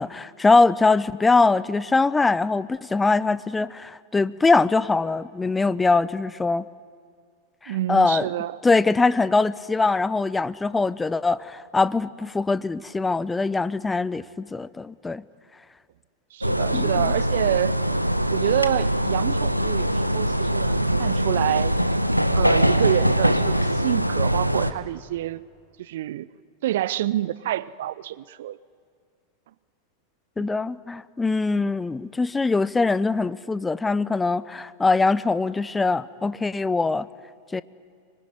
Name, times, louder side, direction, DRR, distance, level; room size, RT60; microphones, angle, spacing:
voice 1, 0.0-6.6 7.6-8.3 8.6-15.2 16.7-16.9 30.4-37.1 37.5-37.6, left 3 dB, 10° left, 18 dB, 0.7 m, -22 dB
voice 2, 7.7-8.6 16.3-17.7 18.3-21.7 22.3-25.4 25.8-26.3 26.6-28.6 30.4-30.5, right 13 dB, 55° right, 20 dB, 0.6 m, -27 dB
sound 1, 16.4-24.7, equal, 90° right, 1.0 m, -22 dB
25.0 x 22.0 x 9.8 m, 2.2 s
figure-of-eight pair, 90°, 0 cm